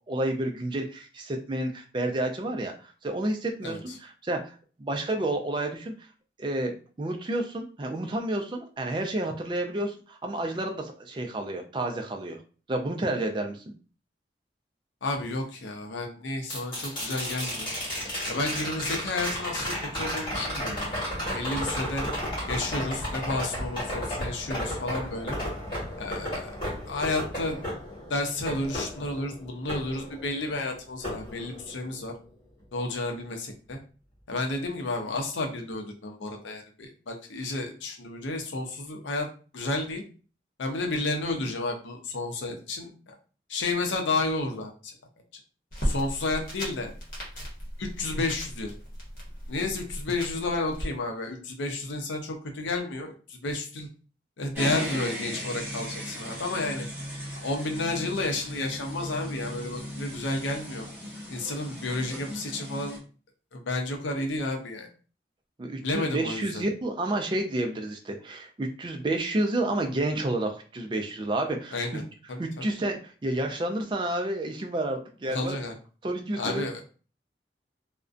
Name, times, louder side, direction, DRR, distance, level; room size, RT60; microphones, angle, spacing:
voice 1, 0.1-2.7 3.0-4.5 4.8-5.9 6.4-12.4 12.7-13.7 65.6-71.8 72.4-75.6 76.0-76.6, right 1 dB, 25° right, 3 dB, 0.3 m, -30 dB
voice 2, 3.6-4.0 15.0-17.7 18.3-21.0 21.3-22.0 22.5-25.4 26.0-26.5 26.9-27.6 28.1-32.1 32.7-33.8 34.3-39.3 39.5-40.0 40.6-43.1 43.5-44.9 45.8-46.9 47.8-48.7 49.5-53.9 54.4-56.9 57.4-60.9 61.3-63.0 63.5-64.9 65.8-66.6 71.7-72.0 72.3-72.6 75.2-75.7 76.4-76.8, left 2 dB, 90° left, 3 dB, 0.6 m, -31 dB
sound 1, 16.5-30.6 31.0-32.1 34.3-34.4, equal, 30° left, 1.2 m, -33 dB
sound 2, 45.7-50.9, equal, 45° left, 0.9 m, -36 dB
sound 3, 54.5-63.0, equal, 10° right, 0.8 m, -37 dB
2.4 x 2.1 x 2.4 m, 0.38 s
head